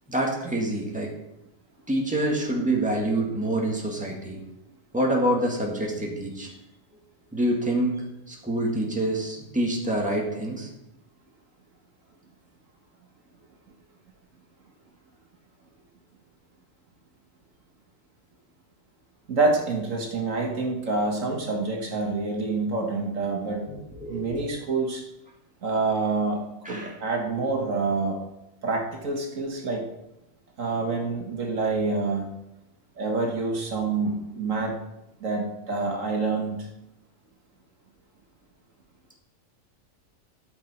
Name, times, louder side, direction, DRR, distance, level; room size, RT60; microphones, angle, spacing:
voice 1, 0.1-1.1 1.9-4.4 4.9-6.5 7.3-7.9 8.3-10.7 23.7-24.4 26.7-26.9, right 1 dB, 5° right, -2 dB, 1.9 m, -26 dB
voice 2, 19.3-23.7 24.1-25.0 25.6-28.2 28.6-29.8 30.6-32.3 33.0-34.8 35.2-36.7, right 3 dB, 70° right, 1 dB, 1.8 m, -27 dB
13.5 x 6.2 x 4.4 m, 0.89 s
omnidirectional pair, 1.4 m